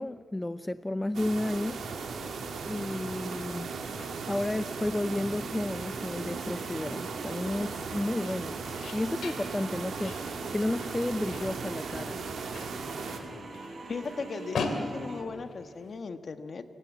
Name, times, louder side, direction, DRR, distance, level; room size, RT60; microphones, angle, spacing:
voice 1, 0.0-1.8 2.7-3.7 4.3-8.6 8.9-12.2, left 1 dB, 15° left, 13 dB, 0.6 m, -32 dB
sound 1, 1.1-13.2, right 5 dB, 80° right, 2.6 m, -37 dB
sound 2, 1.6-15.9, left 4 dB, 80° left, 2.5 m, -43 dB
sound 3, 1.9-15.2, right 3 dB, 55° right, 4.1 m, -45 dB
voice 2, 13.9-16.6, left 4 dB, 55° left, 9 dB, 1.4 m, -37 dB
28.0 x 17.0 x 8.3 m, 2.3 s
cardioid pair, 70°, 0 cm